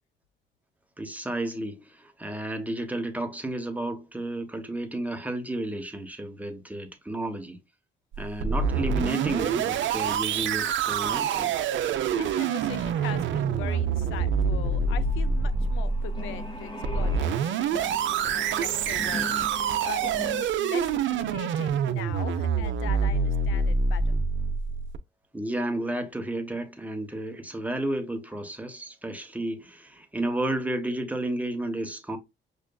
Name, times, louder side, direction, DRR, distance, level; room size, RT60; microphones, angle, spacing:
voice 1, 1.0-7.6 8.2-11.6 25.3-32.2, right 1 dB, 5° right, 0.9 m, -32 dB
sound 1, 8.1-25.0, right 5 dB, 70° right, 0.6 m, -26 dB
voice 2, 12.1-24.1, left 11 dB, 90° left, 0.5 m, -41 dB
sound 2, 14.8-20.4, left 2 dB, 25° left, 1.0 m, -40 dB
6.5 x 2.5 x 2.3 m
cardioid pair, 90°, 20 cm